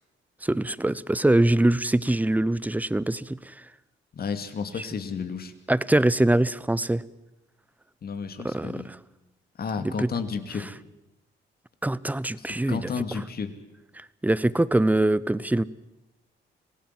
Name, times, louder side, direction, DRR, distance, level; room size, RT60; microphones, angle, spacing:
voice 1, 0.4-3.5 5.7-7.0 8.4-9.0 9.8-10.1 11.8-12.9 14.2-15.6, right 1 dB, 10° right, 19 dB, 0.8 m, -23 dB
voice 2, 4.1-5.5 8.0-8.9 9.6-10.7 12.4-13.5, left 5 dB, 50° left, 9 dB, 2.5 m, -32 dB
26.5 x 17.0 x 7.6 m, 0.95 s
cardioid pair, 90°, 20 cm